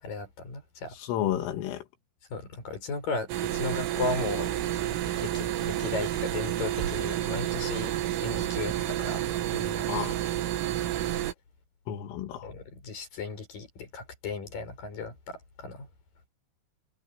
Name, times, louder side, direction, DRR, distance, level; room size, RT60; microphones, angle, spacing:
voice 1, 0.0-1.0 2.3-4.5 5.1-7.9 8.2-9.2 9.5-9.9 12.4-15.9, left 3 dB, 45° left, 8.1 m, -36 dB
voice 2, 0.9-1.8 9.8-10.2 11.9-12.5, left 11 dB, 90° left, 4.7 m, -31 dB
sound 1, 3.3-11.3, right 13 dB, 90° right, 4.3 m, -30 dB
omnidirectional pair, 5.7 m